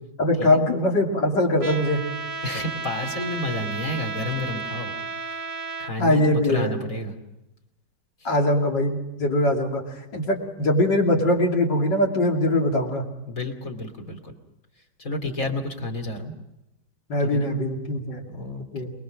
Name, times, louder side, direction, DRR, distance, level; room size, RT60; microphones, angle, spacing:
voice 1, 0.2-2.0 6.0-6.8 8.3-9.8 10.1-13.1 17.1-18.2 18.7-18.9, left 1 dB, 80° left, 1 dB, 3.6 m, -22 dB
Trumpet, 1.6-5.9, right 4 dB, 25° right, 0.8 m, -33 dB
voice 2, 2.4-4.9 5.2-5.5 5.8-7.1 13.3-14.3 15.0-16.3 17.2-17.5 18.3-18.6, left 2 dB, 50° left, 3 dB, 3.2 m, -30 dB
27.5 x 20.5 x 6.3 m, 0.92 s
omnidirectional pair, 1.9 m